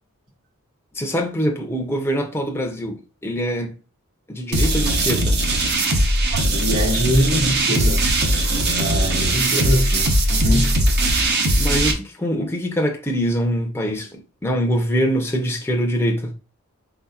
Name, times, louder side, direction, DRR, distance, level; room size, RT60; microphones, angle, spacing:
voice 1, 0.9-3.7 4.3-5.4 11.6-16.3, equal, 10° left, 0.6 m, -24 dB
sound 1, 4.5-11.9, right 1 dB, 50° right, 0.9 m, -19 dB
voice 2, 6.1-8.1 8.6-10.8, equal, 70° right, 1.8 m, -23 dB
4.3 x 4.2 x 2.4 m
head